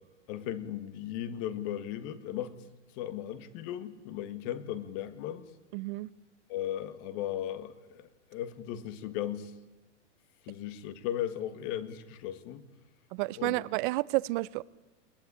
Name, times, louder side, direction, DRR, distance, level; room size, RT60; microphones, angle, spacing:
voice 1, 0.3-2.5 2.9-5.5 6.5-9.5 10.4-12.6 13.4-13.6, left 11 dB, 45° left, 1.8 m, -36 dB
voice 2, 5.7-6.1 13.1-14.6, right 21 dB, 45° right, 0.7 m, -30 dB
21.0 x 19.0 x 10.0 m
hypercardioid pair, 135°, 37 cm